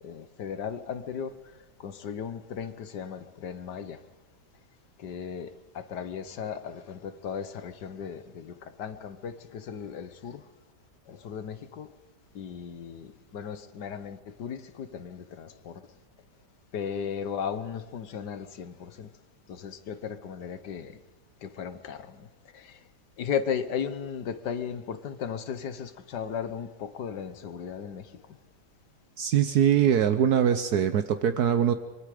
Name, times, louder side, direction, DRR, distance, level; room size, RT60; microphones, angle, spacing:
voice 1, 0.0-1.4 1.8-4.0 5.0-10.4 11.1-11.9 12.4-15.8 16.7-19.1 19.5-21.0 21.4-22.3 22.5-22.8 23.2-28.1, left 7 dB, 80° left, 12 dB, 1.8 m, -36 dB
voice 2, 29.2-31.7, right 9 dB, 70° right, 9 dB, 1.4 m, -22 dB
24.5 x 22.5 x 5.0 m, 1.2 s
omnidirectional pair, 1.8 m